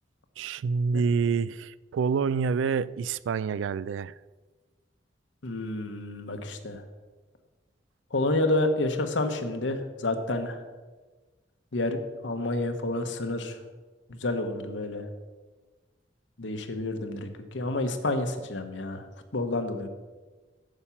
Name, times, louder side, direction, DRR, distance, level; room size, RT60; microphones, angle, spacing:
voice 1, 0.4-4.1, right 5 dB, 90° right, 19 dB, 0.3 m, -27 dB
voice 2, 5.4-6.8 8.1-10.6 11.7-13.6 14.2-15.0 16.4-17.3 17.5-19.0 19.3-19.9, left 2 dB, 75° left, 7 dB, 1.0 m, -29 dB
8.7 x 7.3 x 5.7 m, 1.3 s
head